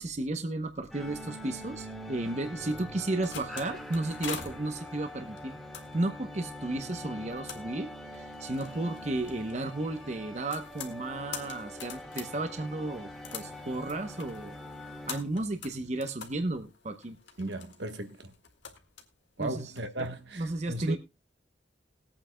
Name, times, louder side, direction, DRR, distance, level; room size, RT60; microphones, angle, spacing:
voice 1, 0.0-5.6 5.9-14.6 14.9-17.2 19.4-19.6 20.4-21.0, right 2 dB, 40° right, 0.8 m, -33 dB
sound 1, 0.9-15.2, left 1 dB, ahead, 1.7 m, -44 dB
sound 2, 2.9-20.1, left 7 dB, 90° left, 1.8 m, -46 dB
voice 2, 17.4-18.3 19.4-21.0, right 2 dB, 70° right, 1.3 m, -36 dB
21.0 x 8.7 x 2.2 m
head